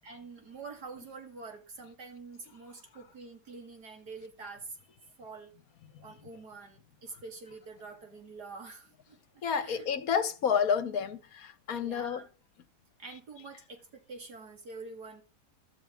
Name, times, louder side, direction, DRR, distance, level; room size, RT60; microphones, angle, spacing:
voice 1, 0.0-4.8 5.2-5.5 6.0-9.9 11.7-12.3 13.0-15.2, right 4 dB, 80° right, 3.2 m, -46 dB
voice 2, 9.4-12.2, left 7 dB, 65° left, 1.4 m, -30 dB
12.5 x 5.4 x 9.1 m
omnidirectional pair, 1.7 m